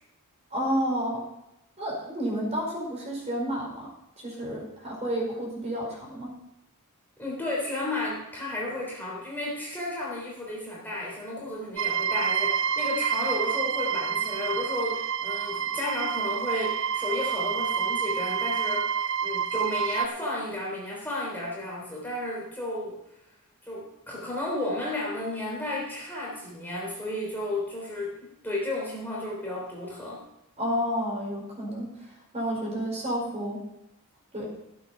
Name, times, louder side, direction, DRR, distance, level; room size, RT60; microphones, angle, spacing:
voice 1, 0.5-1.2 1.8-3.9 4.2-6.3 29.5-29.6 30.6-31.9 32.3-33.6 34.3-34.5, equal, 30° right, -2 dB, 4.8 m, -30 dB
voice 2, 7.2-22.9 23.7-28.2 28.4-30.2, left 1 dB, 10° left, -5 dB, 3.4 m, -33 dB
sound 1, 11.8-20.1, right 7 dB, 60° right, 0.5 m, -28 dB
14.5 x 8.4 x 5.7 m, 0.85 s
head